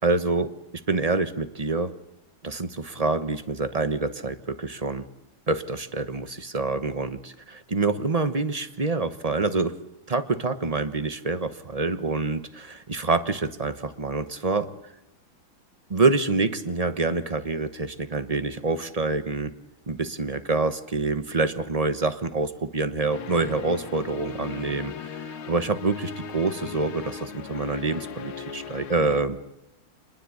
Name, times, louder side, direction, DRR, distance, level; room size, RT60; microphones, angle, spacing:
voice 1, 0.0-0.5 0.9-1.9 2.4-5.1 5.5-9.7 10.1-14.7 15.9-19.5 19.9-29.4, right 3 dB, 30° right, 11 dB, 0.7 m, -26 dB
sound 1, 23.1-29.2, left 6 dB, 80° left, 2.2 m, -38 dB
26.5 x 21.0 x 8.5 m, 0.87 s
omnidirectional pair, 2.3 m